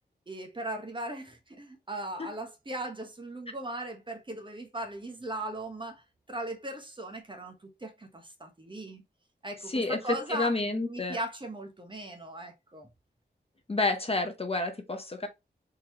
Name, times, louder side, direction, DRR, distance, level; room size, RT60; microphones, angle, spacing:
voice 1, 0.3-9.0 9.4-12.9, right 1 dB, 25° right, 1.0 m, -38 dB
voice 2, 9.7-10.0 10.3-11.2 13.7-15.3, left 2 dB, 35° left, 0.7 m, -29 dB
3.8 x 2.9 x 2.9 m
wide cardioid pair, 90°, 18 cm